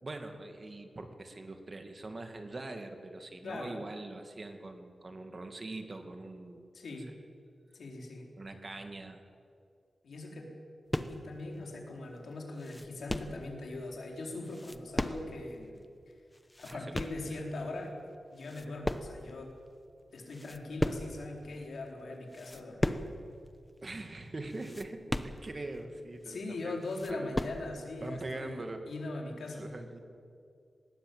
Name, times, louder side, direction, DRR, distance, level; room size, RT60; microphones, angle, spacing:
voice 1, 0.0-6.7 8.4-9.2 16.7-17.0 17.3-17.4 17.8-17.9 23.8-26.8 27.1-27.4 28.0-28.9 29.6-30.0, right 2 dB, 30° right, 6 dB, 2.0 m, -43 dB
voice 2, 3.4-3.8 6.7-7.1 7.7-8.3 10.0-10.5 11.1-15.8 16.1-16.2 16.6-17.9 18.3-19.6 20.1-23.0 26.3-29.7, left 2 dB, 75° left, 0 dB, 4.2 m, -41 dB
sound 1, 10.9-11.3 11.9-12.0 12.3-13.4 14.4-15.5 15.8-15.9 16.3-17.3 17.9-18.1 18.4-19.4 19.7-19.8 20.2-21.3 21.8-21.9 22.3-23.2 23.5-23.6 23.9-24.0 24.5-25.8 26.2-26.3 26.6-27.7, left 1 dB, 10° left, 0.9 m, -36 dB
19.5 x 19.0 x 8.9 m, 2.4 s
wide cardioid pair, 145°, 0 cm